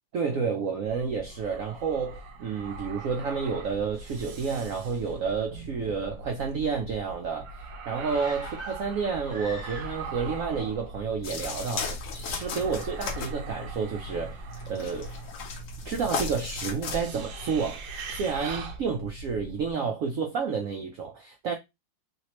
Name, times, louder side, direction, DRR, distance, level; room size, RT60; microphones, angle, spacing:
voice 1, 0.1-7.5 7.9-14.4 14.7-15.1 15.8-21.5, right 5 dB, 85° right, 0.7 m, -30 dB
sound 1, 0.8-19.7, right 3 dB, 65° right, 1.2 m, -41 dB
sound 2, 8.0-10.3 10.6-10.7, equal, 20° left, 1.3 m, -42 dB
sound 3, 11.2-17.0, left 4 dB, 70° left, 0.7 m, -36 dB
3.2 x 2.9 x 2.9 m
omnidirectional pair, 2.0 m